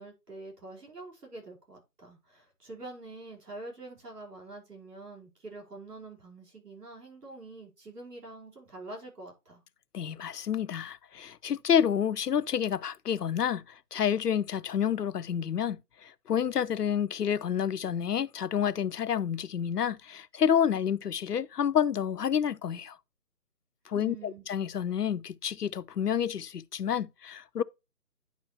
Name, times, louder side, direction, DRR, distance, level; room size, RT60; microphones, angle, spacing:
voice 1, 0.0-9.6 23.9-24.4, right 2 dB, 80° right, 4.9 m, -46 dB
voice 2, 9.9-23.0 23.9-27.6, left 8 dB, 80° left, 0.7 m, -29 dB
10.5 x 4.9 x 3.0 m
figure-of-eight pair, 180°, 46 cm